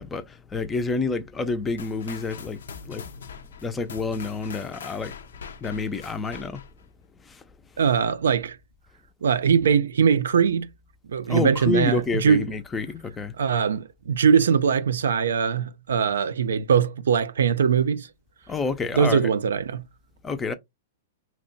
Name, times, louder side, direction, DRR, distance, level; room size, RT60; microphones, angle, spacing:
voice 1, 0.0-2.6 2.9-3.0 3.6-5.1 5.6-6.6 7.3-7.4 11.3-13.3 18.5-19.3 20.2-20.5, left 4 dB, 15° left, 0.4 m, -28 dB
sound 1, 1.8-6.9, left 6 dB, 90° left, 0.4 m, -42 dB
voice 2, 7.8-8.6 9.2-10.7 11.1-12.5 13.4-18.1 18.9-19.8, right 7 dB, 90° right, 0.4 m, -21 dB
2.9 x 2.1 x 3.9 m
hypercardioid pair, 145°, 0 cm